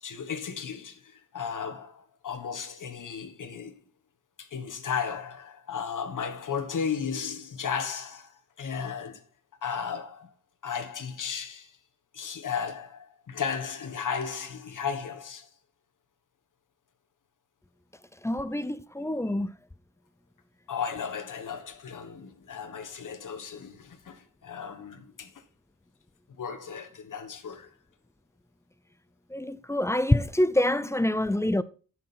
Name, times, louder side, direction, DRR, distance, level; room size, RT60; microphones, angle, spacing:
voice 1, 0.0-3.8 4.4-9.2 9.6-10.3 10.6-11.8 12.1-15.5 19.3-19.4 20.7-25.4 26.4-27.7, left 6 dB, 75° left, 1.4 m, -35 dB
voice 2, 18.2-19.5 29.3-31.6, left 1 dB, 10° left, 0.5 m, -26 dB
10.0 x 6.2 x 4.3 m
wide cardioid pair, 115°, 31 cm